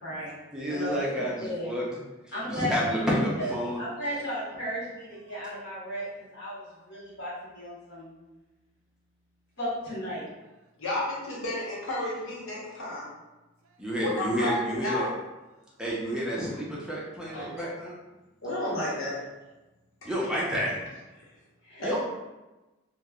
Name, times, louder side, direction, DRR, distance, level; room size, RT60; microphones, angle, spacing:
voice 1, 0.0-0.3 0.7-1.7 2.3-2.7 3.0-3.5 3.8-6.1 6.3-6.6 6.9-8.1 9.6-10.2 21.6-21.8, equal, 55° left, 1.1 m, -35 dB
voice 2, 0.5-1.9 2.5-3.8 13.8-15.1 15.8-18.0 20.0-20.7 21.8-22.0, equal, 5° right, 0.5 m, -29 dB
voice 3, 4.8-5.6 5.9-6.9 10.1-10.7 13.6-13.9 15.5-15.8 21.5-21.6, right 2 dB, 85° right, 0.5 m, -66 dB
voice 4, 10.8-13.1 14.0-15.1 17.3-17.5 18.4-19.2 21.8-22.0, left 1 dB, 75° left, 0.8 m, -31 dB
3.0 x 2.0 x 2.3 m
head